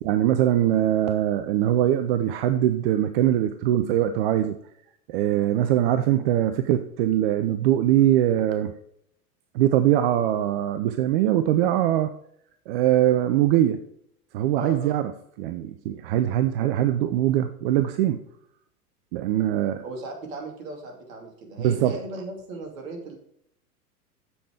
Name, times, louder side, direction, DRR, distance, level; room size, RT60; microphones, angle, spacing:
voice 1, 0.0-4.6 5.1-8.7 9.5-12.1 12.7-13.8 14.3-15.1 15.4-18.2 19.1-19.8 21.6-22.0, right 12 dB, 40° right, 9 dB, 0.6 m, -22 dB
voice 2, 19.8-23.2, right 2 dB, 60° right, 2 dB, 2.5 m, -37 dB
7.3 x 7.0 x 4.8 m, 0.71 s
figure-of-eight pair, 90°, 46 cm